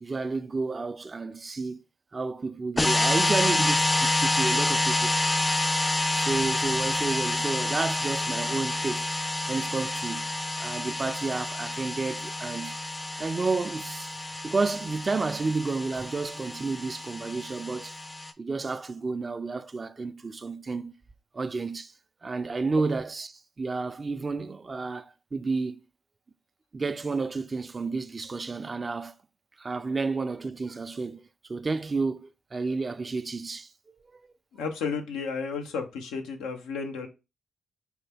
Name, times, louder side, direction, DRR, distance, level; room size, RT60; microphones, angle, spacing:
voice 1, 0.0-1.8 2.1-5.1 6.1-9.1 9.5-10.2 10.6-12.8 13.2-14.1 14.4-18.0 18.4-20.9 21.3-21.9 22.2-25.8 26.7-29.1 29.6-31.2 31.5-33.7 34.1-34.2, right 3 dB, 40° right, 0.4 m, -31 dB
sound 1, 2.8-18.3, left 2 dB, 20° left, 0.5 m, -28 dB
voice 2, 34.6-37.1, left 5 dB, 90° left, 0.6 m, -32 dB
4.4 x 2.2 x 3.4 m
supercardioid pair, 45°, 0 cm